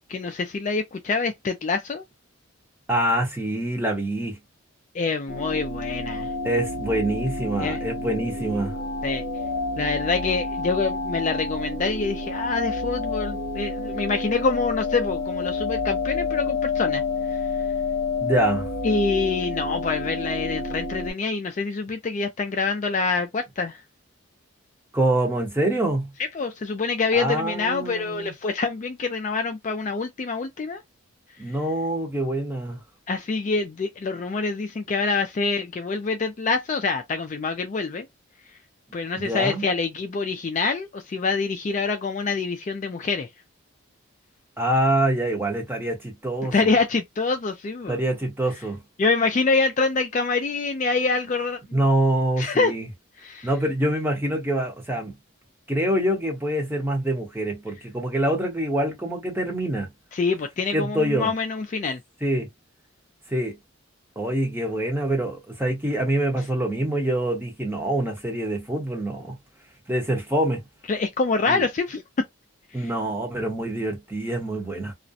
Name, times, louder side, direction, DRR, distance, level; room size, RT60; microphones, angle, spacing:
voice 1, 0.1-2.0 4.9-6.3 7.6-7.8 9.0-9.2 9.8-17.0 17.3-17.4 18.8-23.8 26.3-30.8 33.1-38.1 38.9-43.3 46.5-48.0 49.0-51.8 52.4-52.7 53.2-53.5 60.1-62.0 70.9-72.0 72.7-72.9, left 4 dB, 35° left, 0.3 m, -26 dB
voice 2, 2.9-4.4 6.4-8.8 18.2-18.7 24.9-26.1 27.1-28.3 31.4-32.8 39.2-39.6 44.6-46.7 47.9-48.8 51.7-52.9 53.4-55.1 55.7-59.9 60.7-61.3 62.2-62.5 63.3-63.6 64.2-69.3 69.9-70.6 71.5-71.6 72.7-74.9, right 1 dB, 10° right, 0.8 m, -25 dB
sound 1, 5.3-21.1, left 3 dB, 55° left, 0.8 m, -29 dB
2.4 x 2.0 x 2.6 m
head